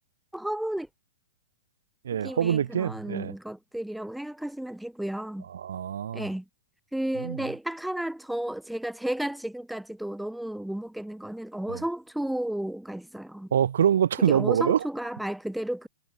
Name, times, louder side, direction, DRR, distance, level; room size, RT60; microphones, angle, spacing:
voice 1, 0.3-0.9 2.1-5.5 6.1-6.5 6.9-13.5 14.3-15.9, right 1 dB, ahead, 0.9 m, -33 dB
voice 2, 2.0-3.3 5.5-6.3 7.2-7.4 11.7-11.8 13.5-14.9, right 9 dB, 70° right, 0.8 m, -25 dB
hypercardioid pair, 110°, 0 cm